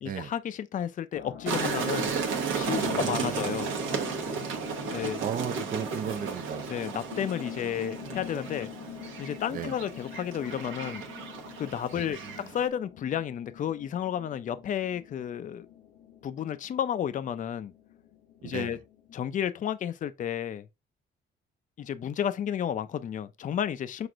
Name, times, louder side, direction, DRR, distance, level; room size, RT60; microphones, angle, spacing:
voice 1, 0.0-2.1 2.5-3.7 4.9-5.2 6.7-8.7 9.2-11.0 11.6-12.2 12.5-15.7 16.2-17.7 18.4-18.8 19.1-20.7 21.8-24.1, left 9 dB, 40° left, 0.4 m, -32 dB
sound 1, 1.1-19.4, left 9 dB, 85° left, 0.9 m, -45 dB
sound 2, 1.5-12.7, right 5 dB, 80° right, 1.0 m, -34 dB
voice 2, 2.8-3.6 5.2-6.7 9.5-9.7 11.9-12.4 18.4-18.8, right 8 dB, 45° right, 0.4 m, -36 dB
6.0 x 2.5 x 2.4 m
cardioid pair, 90°, 20 cm